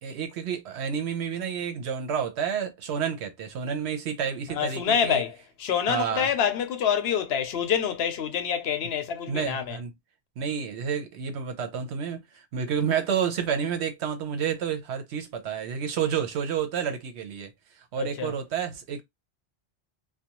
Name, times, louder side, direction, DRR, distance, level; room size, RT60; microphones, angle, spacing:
voice 1, 0.0-5.2 5.9-6.3 9.3-9.9 10.4-17.5 17.7-19.0, right 7 dB, 80° right, 0.9 m, -30 dB
voice 2, 4.5-5.3 5.6-9.8 18.0-18.3, left 8 dB, 70° left, 0.8 m, -26 dB
2.5 x 2.2 x 2.8 m
omnidirectional pair, 1.1 m